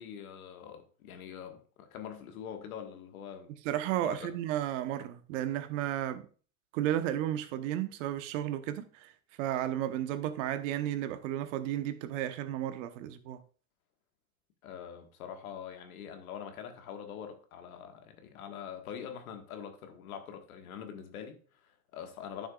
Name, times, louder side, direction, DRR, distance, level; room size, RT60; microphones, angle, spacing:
voice 1, 0.0-3.5 4.0-4.3 14.6-22.5, left 8 dB, 85° left, 1.6 m, -44 dB
voice 2, 3.6-6.2 6.7-13.4, right 12 dB, 65° right, 1.0 m, -33 dB
11.0 x 6.4 x 2.3 m
supercardioid pair, 120°, 41 cm